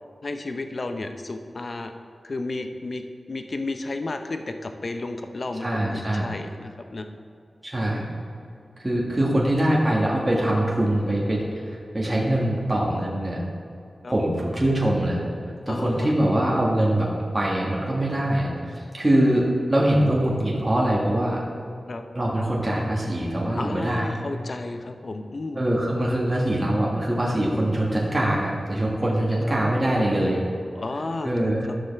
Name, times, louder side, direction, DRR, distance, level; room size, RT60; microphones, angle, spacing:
voice 1, 0.2-1.9 2.2-3.0 3.3-7.1 7.8-8.1 14.0-14.1 15.7-16.1 21.9-22.0 23.6-25.6 30.7-31.5, left 2 dB, 60° left, 7 dB, 0.6 m, -32 dB
voice 2, 5.6-6.3 7.6-8.1 8.8-13.4 14.1-15.2 15.7-21.4 22.1-24.2 25.5-30.4 31.2-31.7, right 1 dB, 25° right, -4 dB, 1.9 m, -23 dB
11.5 x 6.4 x 3.5 m, 2.5 s
cardioid pair, 40°, 0 cm